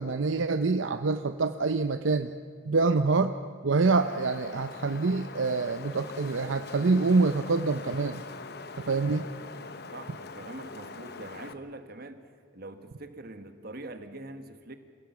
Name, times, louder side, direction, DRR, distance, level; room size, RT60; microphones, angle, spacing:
voice 1, 0.0-2.3 2.7-3.3 3.6-8.2 8.8-9.3, right 3 dB, 75° right, 9 dB, 0.7 m, -26 dB
Wind, 3.9-11.5, left 4 dB, 55° left, 0.9 m, -43 dB
voice 2, 9.9-12.2 12.5-14.8, right 2 dB, 50° right, 8 dB, 1.5 m, -43 dB
27.0 x 16.5 x 7.0 m, 2.3 s
head